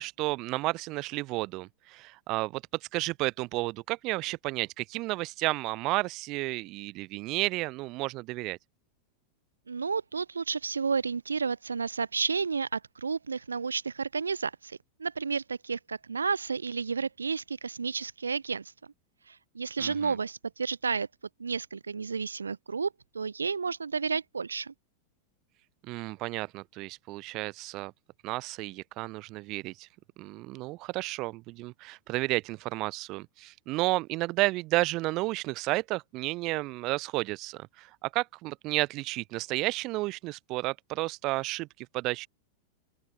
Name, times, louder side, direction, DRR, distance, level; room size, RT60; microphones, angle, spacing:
voice 1, 0.0-2.6 2.9-8.6 19.8-20.1 25.8-27.9 28.2-29.9 30.2-42.3, right 21 dB, 40° right, 0.7 m, -32 dB
voice 2, 9.7-18.7 19.3-21.1 21.4-24.7, right 5 dB, 75° right, 0.4 m, -31 dB
open air
figure-of-eight pair, 90°, 0 cm